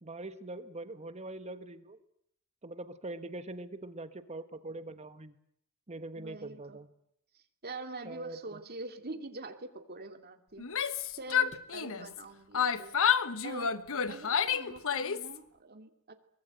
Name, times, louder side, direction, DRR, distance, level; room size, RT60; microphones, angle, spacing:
voice 1, 0.0-2.0 2.6-5.3 5.9-6.9 8.0-8.4, right 2 dB, 30° right, 10 dB, 1.3 m, -43 dB
voice 2, 6.2-6.8 7.3-10.7 11.1-13.0 13.4-13.8 14.1-16.1, right 2 dB, 45° right, 7 dB, 2.7 m, -44 dB
Yell, 10.6-12.2 12.5-15.4, left 7 dB, 65° left, 1.2 m, -30 dB
23.0 x 21.5 x 9.1 m, 0.71 s
head